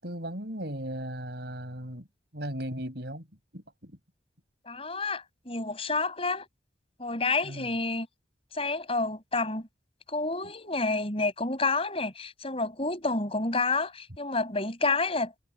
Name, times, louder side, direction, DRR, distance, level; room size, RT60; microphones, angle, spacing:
voice 1, 0.0-2.1 2.3-3.3 3.5-3.9 7.4-7.7, right 1 dB, 60° right, 7.2 m, -37 dB
voice 2, 4.7-6.5 7.0-8.1 8.5-9.7 10.1-15.3, left 3 dB, 30° left, 7.1 m, -29 dB
head